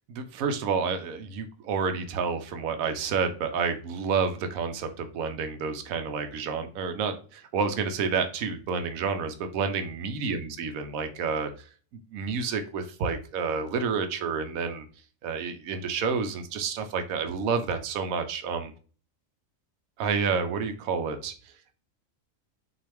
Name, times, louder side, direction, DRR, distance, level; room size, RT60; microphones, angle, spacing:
voice 1, 0.1-11.5 12.1-14.8 15.2-18.7 20.0-21.5, right 5 dB, 90° right, 8 dB, 1.1 m, -29 dB
6.0 x 2.5 x 3.3 m, 0.38 s
omnidirectional pair, 1.4 m